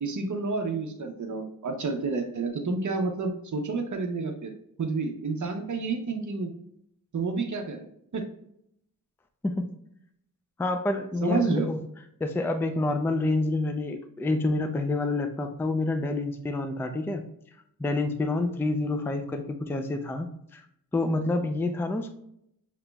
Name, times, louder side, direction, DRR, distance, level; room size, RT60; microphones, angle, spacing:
voice 1, 0.0-4.5 4.8-6.5 7.1-7.9 8.1-8.2 11.2-11.7, right 4 dB, 55° right, 3 dB, 0.8 m, -29 dB
voice 2, 10.6-11.8 12.2-17.2 17.8-20.6 20.9-22.1, left 2 dB, 5° left, 7 dB, 0.3 m, -28 dB
6.7 x 3.0 x 2.2 m, 0.74 s
wide cardioid pair, 135°, 36 cm